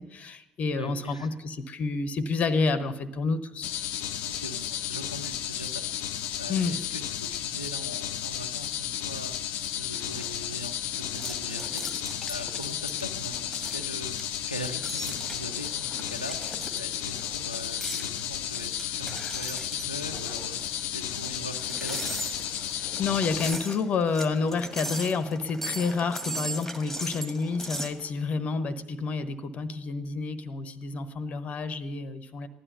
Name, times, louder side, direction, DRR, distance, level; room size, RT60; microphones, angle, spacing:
voice 1, 0.0-3.7 6.5-6.8 22.7-32.5, left 4 dB, 40° left, 13 dB, 1.0 m, -29 dB
voice 2, 0.8-1.3 4.2-14.1 14.5-22.0, equal, 90° left, 3 dB, 0.7 m, -41 dB
sound 1, 3.6-23.6, left 11 dB, 55° left, 0.7 m, -33 dB
sound 2, 9.7-28.0, equal, ahead, 2.0 m, -39 dB
15.5 x 11.0 x 6.6 m, 0.90 s
figure-of-eight pair, 60°, 4 cm